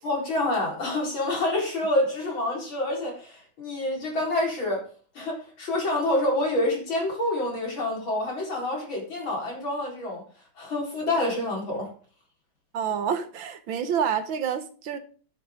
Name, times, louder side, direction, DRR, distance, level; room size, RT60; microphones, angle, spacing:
voice 1, 0.0-4.9 5.1-10.2 10.6-11.9, left 1 dB, 80° left, -2 dB, 5.1 m, -27 dB
voice 2, 12.7-15.0, right 7 dB, 80° right, 9 dB, 1.9 m, -28 dB
10.5 x 9.8 x 3.7 m, 0.40 s
omnidirectional pair, 2.2 m